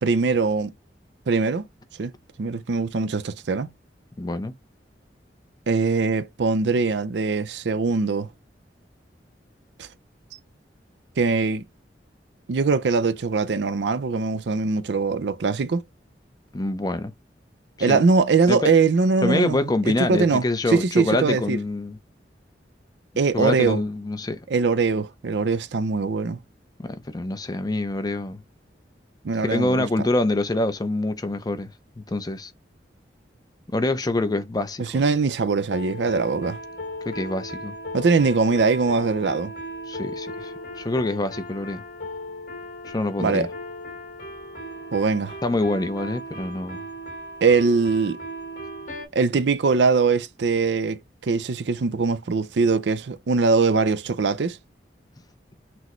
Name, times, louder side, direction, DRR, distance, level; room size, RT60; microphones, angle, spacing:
voice 1, 0.0-0.7 1.3-1.7 2.0-2.1 2.4-3.7 5.7-8.3 9.8-9.9 11.2-11.6 12.5-15.8 17.8-21.6 23.2-23.8 24.5-26.4 29.2-29.9 34.8-36.6 37.9-39.5 43.2-43.5 44.9-45.4 47.4-48.2 49.1-54.6, right 4 dB, 85° right, 0.5 m, -22 dB
voice 2, 4.2-4.5 16.5-17.1 17.8-18.0 18.5-18.7 19.2-22.0 23.3-24.4 26.8-28.4 29.4-31.7 32.0-32.5 33.7-35.0 37.1-37.7 39.9-41.8 42.8-43.5 45.4-46.8, left 2 dB, 20° left, 0.6 m, -25 dB
sound 1, 35.7-49.1, equal, 50° left, 1.9 m, -37 dB
6.0 x 2.1 x 3.0 m
head